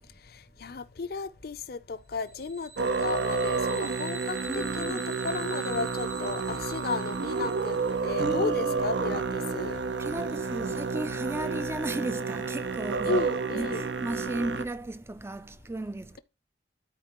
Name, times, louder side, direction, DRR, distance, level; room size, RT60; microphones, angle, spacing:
voice 1, 0.3-7.8 8.0-9.8 13.0-13.9, left 4 dB, 55° left, 0.6 m, -34 dB
sound 1, 2.2-8.2, right 3 dB, 60° right, 5.6 m, -45 dB
Musical instrument, 2.8-14.7, right 4 dB, 75° right, 0.6 m, -30 dB
voice 2, 4.5-5.0 8.2-8.9 10.0-13.3 13.5-16.2, right 2 dB, 15° right, 0.3 m, -35 dB
13.0 x 4.4 x 3.0 m
head